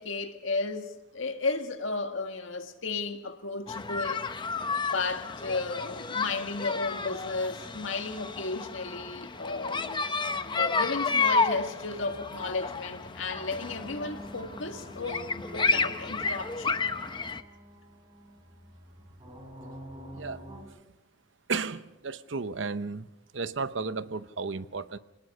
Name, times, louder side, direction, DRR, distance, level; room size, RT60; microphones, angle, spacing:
voice 1, 0.0-4.3 4.9-10.1 10.5-16.9, left 3 dB, 75° left, 1.8 m, -34 dB
sound 1, 3.7-17.4, left 4 dB, 25° left, 0.8 m, -31 dB
sound 2, 4.1-20.6, equal, 20° right, 4.1 m, -50 dB
Wind instrument woodwind instrument, 9.4-15.9, left 1 dB, 55° left, 6.8 m, -57 dB
voice 2, 21.5-23.1 23.3-25.0, right 4 dB, 65° right, 0.8 m, -33 dB
27.0 x 19.5 x 5.5 m
head